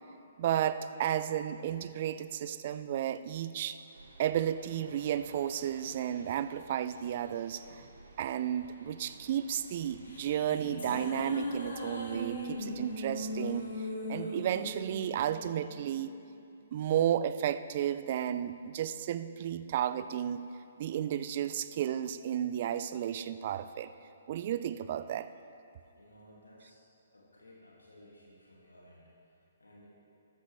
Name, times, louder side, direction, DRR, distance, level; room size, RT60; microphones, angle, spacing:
voice 1, 0.4-3.8 4.2-7.8 8.2-13.7 14.1-16.1 16.7-20.4 20.8-23.9 24.3-25.3, right 10 dB, 40° right, 13 dB, 0.4 m, -33 dB
sound 1, 3.9-13.7, right 2 dB, 65° right, 1.5 m, -55 dB
sound 2, 9.8-16.4, left 1 dB, 55° left, 2.4 m, -39 dB
voice 2, 25.9-26.8 27.1-29.9, left 1 dB, 75° left, -4 dB, 2.2 m, -58 dB
13.5 x 13.0 x 3.3 m, 2.7 s
figure-of-eight pair, 125°, 0 cm